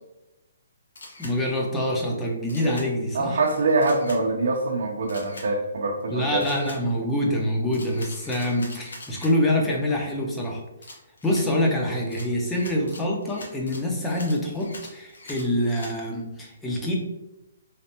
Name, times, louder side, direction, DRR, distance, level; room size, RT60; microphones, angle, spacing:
Camera, 1.0-1.4 2.5-2.9 3.8-4.2 5.1-5.5 6.4-6.8 7.7-9.3 10.8-11.5 12.1-15.9, left 2 dB, 85° left, 1.0 m, -43 dB
voice 1, 1.2-3.4 6.1-10.6 11.2-17.0, left 1 dB, 10° left, -1 dB, 0.7 m, -25 dB
voice 2, 3.1-6.4, right 3 dB, 65° right, 1 dB, 0.7 m, -24 dB
3.3 x 3.2 x 2.9 m, 0.96 s
hypercardioid pair, 160°, 0 cm